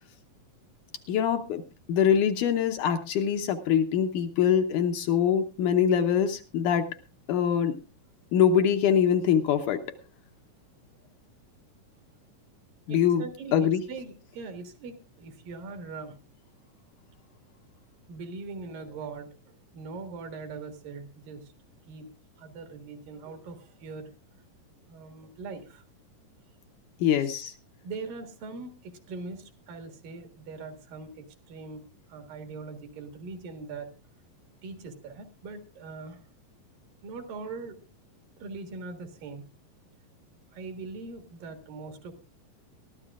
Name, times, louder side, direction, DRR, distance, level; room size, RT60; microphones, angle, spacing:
voice 1, 1.1-1.6 1.9-6.9 7.3-7.8 8.3-9.8 12.9-13.2 13.5-13.8 27.0-27.5, left 8 dB, 70° left, 6 dB, 2.3 m, -24 dB
voice 2, 12.9-16.1 18.1-19.3 19.7-21.5 21.9-22.1 22.4-24.1 24.9-25.8 27.8-31.8 32.1-33.9 34.6-36.2 37.0-37.8 38.4-39.4 40.5-42.1, right 4 dB, 75° right, 6 dB, 3.4 m, -41 dB
22.5 x 13.0 x 2.4 m, 0.31 s
omnidirectional pair, 4.0 m